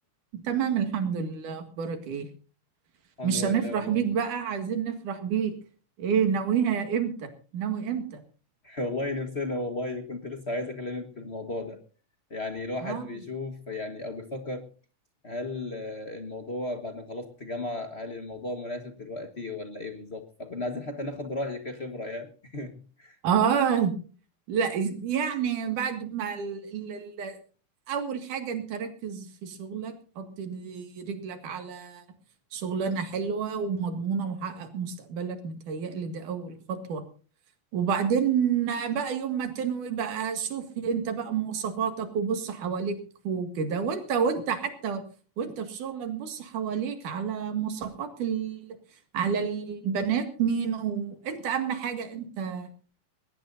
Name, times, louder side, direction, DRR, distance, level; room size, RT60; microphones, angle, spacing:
voice 1, 0.3-2.3 3.2-5.5 6.0-8.2 12.8-13.1 23.2-24.0 24.5-27.4 27.9-32.0 32.5-37.0 37.7-43.0 43.3-45.0 45.4-48.8 49.1-52.7, right 7 dB, 85° right, 7 dB, 3.5 m, -29 dB
voice 2, 3.2-4.0 8.6-11.8 12.3-14.7 15.2-23.2, left 2 dB, 55° left, 5 dB, 0.7 m, -35 dB
21.0 x 18.5 x 2.6 m, 0.38 s
omnidirectional pair, 3.5 m